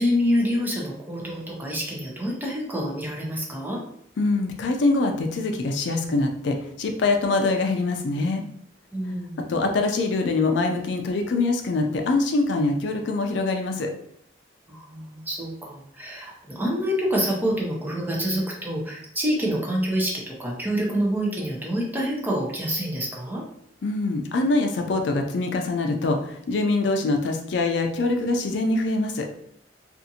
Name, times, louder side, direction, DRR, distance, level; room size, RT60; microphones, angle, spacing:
voice 1, 0.0-3.8 8.9-9.5 14.7-23.4, equal, 10° right, -2 dB, 0.6 m, -27 dB
voice 2, 4.2-8.4 9.5-13.9 23.8-29.3, left 3 dB, 70° left, 4 dB, 0.4 m, -24 dB
2.6 x 2.4 x 2.7 m, 0.66 s
head